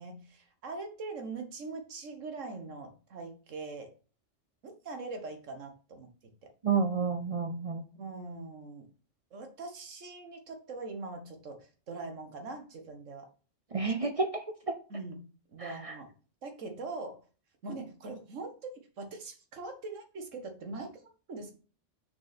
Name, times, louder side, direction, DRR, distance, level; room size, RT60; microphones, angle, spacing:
voice 1, 0.0-3.9 4.6-6.1 8.0-8.9 9.3-13.3 14.9-15.2 15.5-16.1 16.4-17.2 17.6-18.5 19.0-20.9 21.3-21.5, right 3 dB, 90° right, 5 dB, 1.6 m, -42 dB
voice 2, 6.6-7.8 13.7-14.7 15.6-15.9, right 4 dB, 45° right, 7 dB, 0.4 m, -30 dB
6.5 x 4.7 x 4.1 m, 0.38 s
omnidirectional pair, 1.3 m